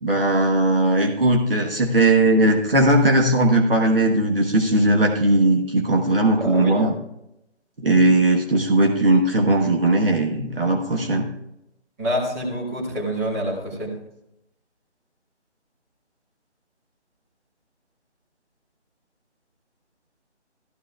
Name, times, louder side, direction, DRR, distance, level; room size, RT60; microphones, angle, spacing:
voice 1, 0.0-7.0 7.8-11.3, right 1 dB, 50° right, 1 dB, 1.2 m, -18 dB
voice 2, 6.4-6.7 12.0-13.9, equal, 15° right, -6 dB, 1.9 m, -26 dB
15.5 x 13.5 x 2.4 m, 0.86 s
figure-of-eight pair, 155°, 35 cm